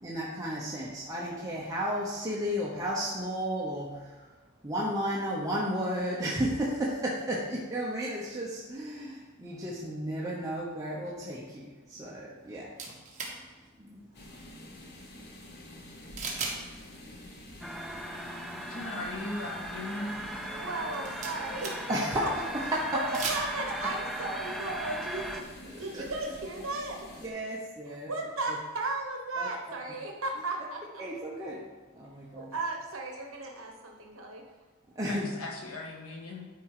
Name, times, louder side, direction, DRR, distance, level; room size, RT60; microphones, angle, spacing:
voice 1, 0.0-4.2 4.6-13.0 13.8-14.0 21.9-22.3 22.5-23.0 23.4-23.5 25.7-26.0 27.2-28.1 29.4-29.5 31.0-31.6 31.9-32.5 34.9-35.4, equal, 15° right, -5 dB, 1.0 m, -33 dB
sound 1, 12.8-13.3 16.2-16.6 16.9-17.0 20.8-22.0 23.0-23.4, right 4 dB, 35° right, 1.6 m, -36 dB
sound 2, 14.1-27.3, left 1 dB, 50° left, 1.2 m, -48 dB
sound 3, 17.6-25.4, right 1 dB, ahead, 0.5 m, -38 dB
voice 2, 18.7-20.1 35.0-36.5, left 2 dB, 85° left, -1 dB, 1.5 m, -38 dB
voice 3, 19.9-21.9 22.9-27.0 28.1-31.0 32.3-34.4, right 2 dB, 70° right, 1 dB, 1.2 m, -36 dB
11.5 x 4.6 x 4.9 m, 1.3 s
head